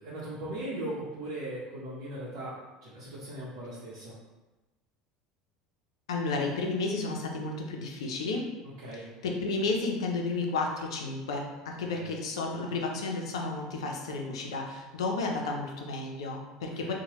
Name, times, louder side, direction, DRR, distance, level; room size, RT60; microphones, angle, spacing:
voice 1, 0.0-2.5 2.8-4.1 8.8-9.1 11.9-12.1 16.8-16.9, right 1 dB, 75° right, -8 dB, 0.7 m, -38 dB
voice 2, 6.1-8.5 8.9-16.9, left 3 dB, 90° left, 1 dB, 0.5 m, -32 dB
3.0 x 2.1 x 3.0 m, 1.1 s
hypercardioid pair, 85°, 3 cm